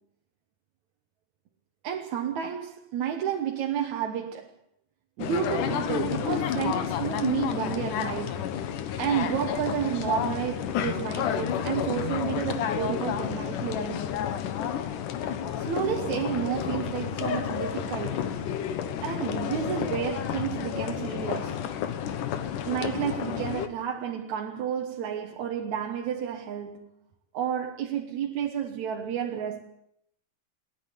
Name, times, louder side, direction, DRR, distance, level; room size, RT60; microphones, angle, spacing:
voice 1, 1.8-4.5 5.2-8.5 9.0-14.2 15.6-18.4 19.0-21.7 22.6-26.9 27.3-29.6, right 9 dB, 65° right, 2.4 m, -31 dB
sound 1, 5.2-23.7, left 9 dB, 70° left, 2.7 m, -30 dB
27.5 x 10.5 x 9.4 m
omnidirectional pair, 4.0 m